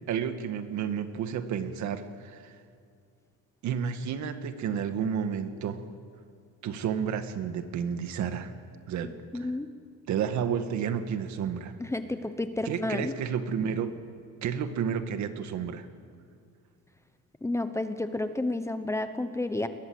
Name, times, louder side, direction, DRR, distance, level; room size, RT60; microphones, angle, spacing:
voice 1, 0.1-2.5 3.6-5.8 6.6-8.5 8.9-9.5 10.1-11.7 12.6-14.0 14.4-15.9, right 7 dB, 60° right, 9 dB, 1.8 m, -31 dB
voice 2, 9.3-9.7 11.8-13.1 17.4-19.7, left 2 dB, 10° left, 9 dB, 0.9 m, -31 dB
30.0 x 21.5 x 8.0 m, 2.3 s
cardioid pair, 155°, 33 cm